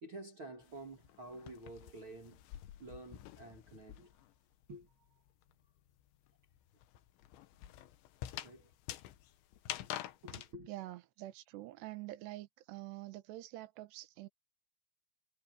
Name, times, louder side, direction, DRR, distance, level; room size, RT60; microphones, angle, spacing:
voice 1, 0.0-2.4 2.8-4.2 4.7-5.2 8.4-8.7 9.8-10.7, right 2 dB, 45° right, 1.8 m, -50 dB
sound 1, 0.6-4.4 4.6-10.5, left 13 dB, 90° left, 3.4 m, -47 dB
voice 2, 10.7-14.3, right 16 dB, 75° right, 3.2 m, -46 dB
omnidirectional pair, 5.2 m